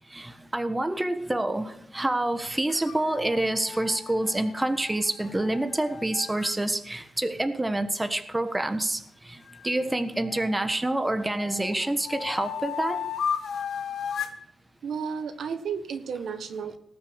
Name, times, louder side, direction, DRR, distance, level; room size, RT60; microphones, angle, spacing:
voice 1, 0.1-13.0, right 1 dB, 15° right, 9 dB, 1.3 m, -27 dB
sound 1, 2.7-6.5 9.5-10.7 11.2-14.4, left 7 dB, 85° left, 1.3 m, -35 dB
voice 2, 14.8-16.8, right 6 dB, 90° right, 8 dB, 1.5 m, -33 dB
18.5 x 6.9 x 6.2 m, 0.72 s
wide cardioid pair, 120°, 0 cm